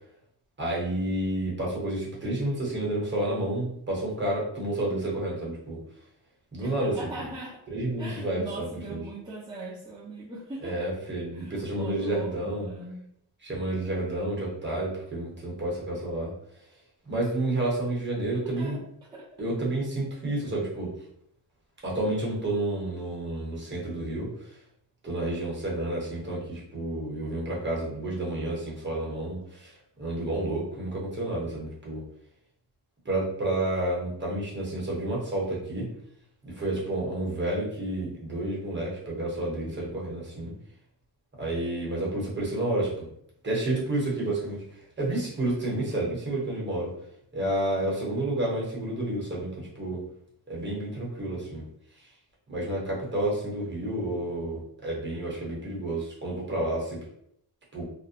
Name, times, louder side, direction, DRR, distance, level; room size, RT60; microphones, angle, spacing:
voice 1, 0.6-5.8 6.5-7.0 7.7-9.0 10.6-12.7 13.4-16.3 17.0-18.8 19.4-20.9 21.8-24.6 25.0-29.7 30.0-32.0 33.0-35.9 36.4-40.5 41.4-43.1 43.4-44.6 45.0-46.9 47.3-50.1 50.5-51.6 52.0-52.1 52.5-57.0 57.7-57.8, right 1 dB, 25° right, -4 dB, 1.0 m, -30 dB
voice 2, 6.6-7.6 8.0-10.9 11.3-13.1 18.6-18.8 19.1-19.3, right 2 dB, 10° right, -9 dB, 0.7 m, -40 dB
2.5 x 2.1 x 2.8 m, 0.71 s
cardioid pair, 110°, 43 cm